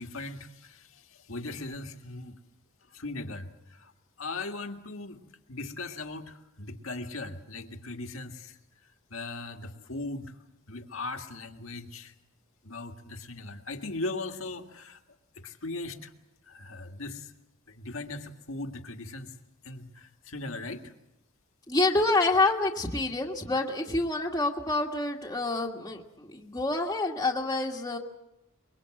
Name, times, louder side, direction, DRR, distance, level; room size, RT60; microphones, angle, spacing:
voice 1, 0.0-2.4 2.9-3.9 4.2-5.2 5.5-8.6 9.1-10.4 10.7-12.2 12.6-15.0 15.3-16.1 16.5-17.3 17.7-19.3 19.6-20.9, left 2 dB, 70° left, 5 dB, 2.0 m, -39 dB
voice 2, 21.7-28.0, left 2 dB, 15° left, -2 dB, 1.7 m, -27 dB
24.0 x 22.5 x 7.8 m, 0.88 s
head